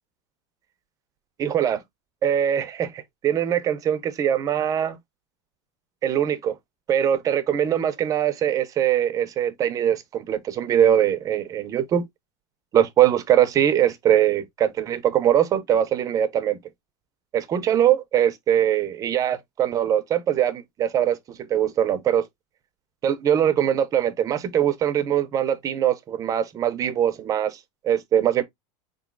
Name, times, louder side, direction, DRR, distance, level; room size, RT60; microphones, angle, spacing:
voice 1, 1.4-1.8 2.2-5.0 6.0-6.5 6.9-12.0 12.7-16.6 17.3-22.2 23.0-28.4, right 10 dB, 20° right, 0.4 m, -22 dB
3.7 x 2.9 x 2.3 m
supercardioid pair, 155°, 16 cm